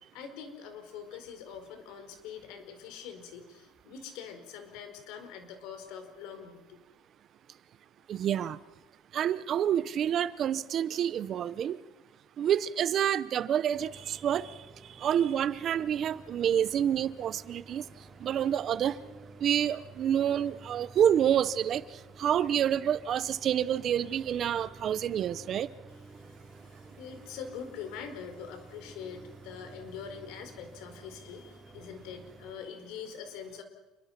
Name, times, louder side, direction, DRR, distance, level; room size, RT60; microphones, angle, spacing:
voice 1, 0.1-6.8 26.2-33.6, left 7 dB, 75° left, 4.7 m, -44 dB
voice 2, 8.1-8.6 9.1-11.8 12.4-14.5 15.0-17.9 18.2-19.0 19.4-21.8 22.2-25.7, right 9 dB, 40° right, 0.8 m, -28 dB
sound 1, 13.7-32.5, right 3 dB, 15° right, 2.8 m, -52 dB
28.5 x 22.5 x 6.0 m
cardioid pair, 155°, 0 cm